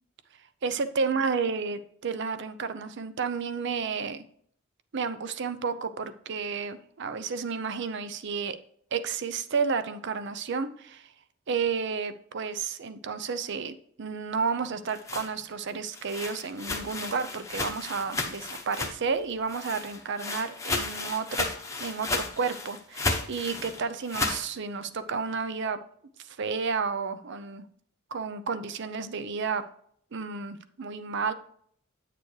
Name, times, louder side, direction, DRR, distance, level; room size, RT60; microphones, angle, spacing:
voice 1, 0.6-4.2 4.9-8.6 8.9-11.1 11.5-21.5 21.8-25.8 26.2-27.6 28.1-29.6 30.1-31.3, right 5 dB, 55° right, 12 dB, 0.6 m, -31 dB
sound 1, 14.7-19.2 19.5-24.4, left 3 dB, 15° left, 0.8 m, -33 dB
9.2 x 6.7 x 3.2 m, 0.63 s
head